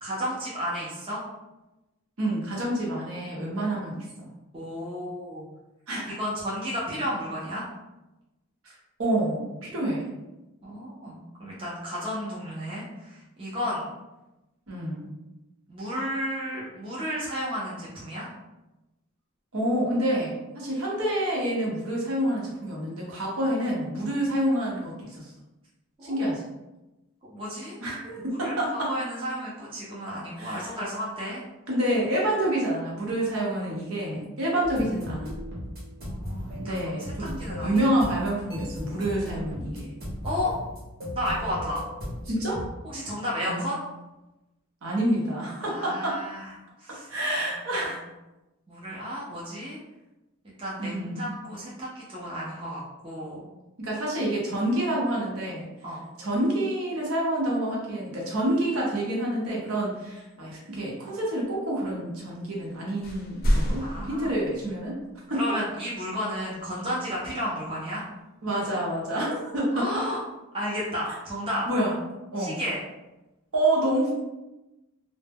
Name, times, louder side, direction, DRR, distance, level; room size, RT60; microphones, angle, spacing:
voice 1, 0.0-1.2 4.5-5.5 6.2-7.7 10.6-13.9 15.7-18.3 26.0-26.2 27.3-27.8 28.3-31.4 36.0-36.9 37.2-37.8 40.2-40.5 41.1-41.8 42.8-43.8 45.6-46.5 46.8-47.1 47.5-47.9 48.7-49.8 50.4-53.5 55.8-56.0 63.8-64.3 65.3-68.0 69.7-70.2 70.5-71.7 72.4-72.8, equal, 25° right, -7 dB, 0.5 m, -33 dB
voice 2, 2.2-4.3 5.9-6.1 8.6-10.1 14.7-15.1 19.5-25.3 26.0-26.4 27.8-28.9 30.4-30.7 31.7-35.4 36.6-39.9 42.3-42.6 43.4-43.6 44.8-46.2 47.1-48.0 50.8-51.3 53.8-55.6 56.2-65.0 65.3-65.4 68.4-70.0 71.7-72.0 72.3-72.6 73.5-74.2, right 1 dB, 75° right, -4 dB, 0.8 m, -28 dB
sound 1, 34.6-42.7, left 1 dB, 45° right, 0.8 m, -37 dB
sound 2, 62.6-62.7 63.0-65.1, equal, 45° left, 0.4 m, -28 dB
2.1 x 2.0 x 3.4 m, 1.0 s
head